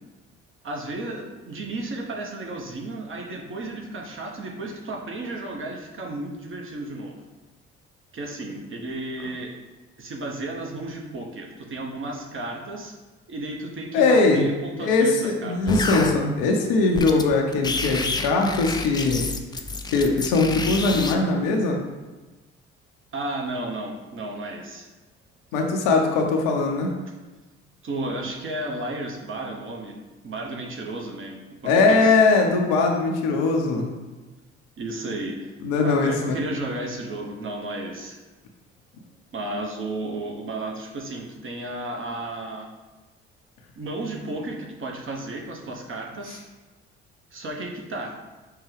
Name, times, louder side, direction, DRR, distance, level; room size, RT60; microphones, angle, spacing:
voice 1, 0.6-7.2 8.1-9.5 10.0-12.9 13.3-15.1 15.4-15.8 23.1-24.9 27.8-30.0 30.2-32.2 34.8-35.5 35.8-38.2 39.3-42.7 43.8-46.4 47.3-48.2, right 2 dB, 40° right, 0 dB, 1.0 m, -33 dB
voice 2, 13.9-14.5 14.8-19.3 19.9-21.8 25.5-26.9 31.6-33.9 35.6-36.4, left 3 dB, 70° left, 2 dB, 0.7 m, -21 dB
sound 1, 15.7-16.1 16.9-17.2 17.5-21.2, left 3 dB, 15° left, 0.4 m, -28 dB
5.5 x 2.2 x 3.3 m, 1.2 s
hypercardioid pair, 50°, 32 cm